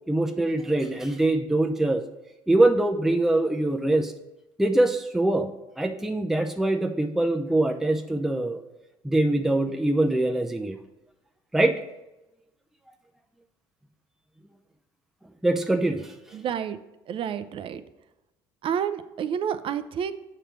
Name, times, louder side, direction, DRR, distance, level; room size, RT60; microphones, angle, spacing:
voice 1, 0.1-2.0 2.5-4.1 4.6-5.5 5.8-8.6 9.0-10.8 11.5-11.8 15.4-16.1, right 2 dB, 5° right, 5 dB, 0.5 m, -23 dB
voice 2, 16.3-16.8 17.1-17.8 18.6-20.1, right 8 dB, 50° right, 12 dB, 0.5 m, -29 dB
7.5 x 3.3 x 5.8 m, 0.97 s
supercardioid pair, 75°, 12 cm